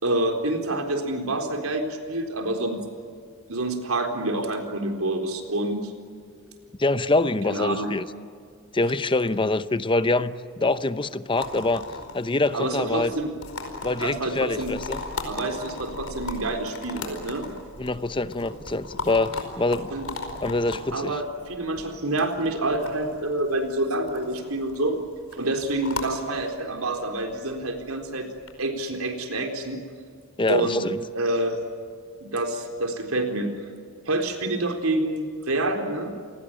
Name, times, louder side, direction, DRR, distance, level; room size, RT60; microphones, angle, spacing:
voice 1, 0.0-2.8 3.5-5.9 7.5-7.9 12.5-13.3 14.0-14.7 15.2-17.5 19.9-20.1 20.9-25.0 25.3-28.3 28.6-29.8 30.5-30.9 31.1-31.6 32.2-33.5 34.1-36.2, right 2 dB, 85° right, 4 dB, 4.1 m, -27 dB
voice 2, 6.8-8.1 8.7-11.8 12.1-13.1 13.8-15.0 17.8-19.9 20.4-21.2 30.4-31.0, left 2 dB, 25° left, 13 dB, 0.7 m, -25 dB
sound 1, 11.4-28.5, left 3 dB, 80° left, 4.8 m, -38 dB
29.0 x 19.5 x 8.9 m, 2.2 s
head